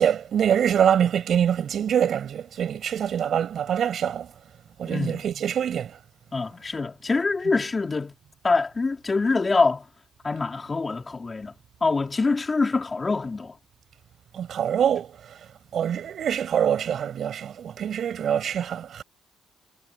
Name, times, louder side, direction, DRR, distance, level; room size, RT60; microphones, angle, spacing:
voice 1, 0.0-4.3 4.8-6.0 14.3-15.4 15.7-19.0, right 9 dB, 60° right, 6.8 m, -24 dB
voice 2, 4.9-5.2 6.3-8.1 8.4-9.8 10.2-11.5 11.8-13.5, left 3 dB, 30° left, 4.5 m, -25 dB
cardioid pair, 90°, 0 cm